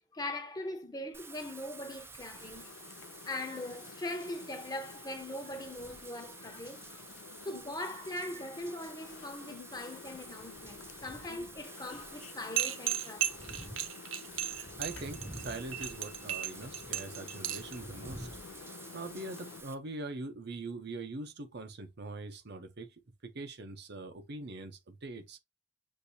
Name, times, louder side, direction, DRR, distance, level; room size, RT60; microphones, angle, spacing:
voice 1, 0.1-2.7 3.2-7.0 7.4-13.4, left 1 dB, 20° left, 0.8 m, -41 dB
Wind / Rain, 1.1-19.8, right 3 dB, 15° right, 0.4 m, -50 dB
sound 1, 2.3-19.6, left 6 dB, 80° left, 0.4 m, -51 dB
sound 2, 12.6-17.7, right 10 dB, 90° right, 0.7 m, -34 dB
voice 2, 14.8-18.3 18.6-22.9 23.2-25.4, right 2 dB, 60° right, 0.8 m, -42 dB
6.5 x 2.7 x 2.7 m
head